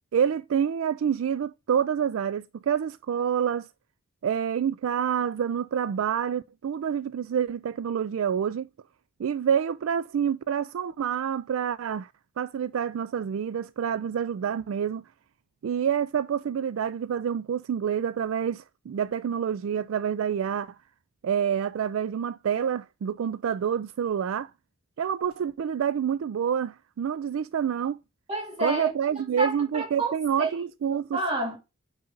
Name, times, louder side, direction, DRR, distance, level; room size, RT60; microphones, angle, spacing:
voice 1, 0.1-3.7 4.2-8.7 9.2-12.1 12.4-15.0 15.6-20.8 21.2-24.5 25.0-28.0 28.6-31.2, right 8 dB, 65° right, 0.3 m, -27 dB
voice 2, 28.3-28.9 29.4-30.5 31.1-31.6, right 2 dB, 30° right, 3.0 m, -29 dB
9.5 x 4.0 x 3.9 m
head